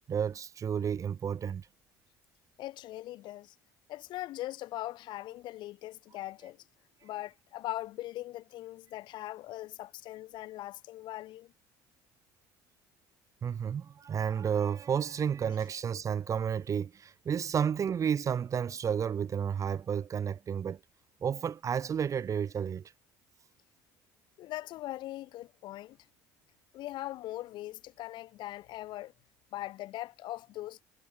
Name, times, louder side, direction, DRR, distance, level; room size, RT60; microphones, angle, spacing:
voice 1, 0.1-1.7 13.4-20.8 21.2-22.9, right 7 dB, 40° right, 0.8 m, -31 dB
voice 2, 2.6-3.6 3.9-6.6 7.0-11.5 24.4-26.0 26.7-29.1 29.5-30.8, left 15 dB, 60° left, 5.8 m, -40 dB
hypercardioid pair, 65°, 9 cm